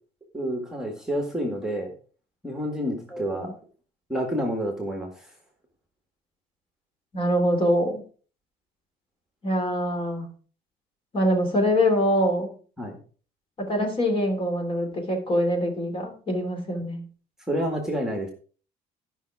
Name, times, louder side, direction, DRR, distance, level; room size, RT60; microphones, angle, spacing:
voice 1, 0.3-1.9 2.4-3.5 4.1-5.1 12.8-13.0 17.5-18.3, equal, 5° right, 2 dB, 1.8 m, -28 dB
voice 2, 3.1-3.5 7.1-8.0 9.4-10.3 11.1-12.5 13.6-17.0, equal, 35° left, 3 dB, 3.0 m, -24 dB
13.0 x 5.9 x 4.7 m, 0.41 s
cardioid pair, 150°, 16 cm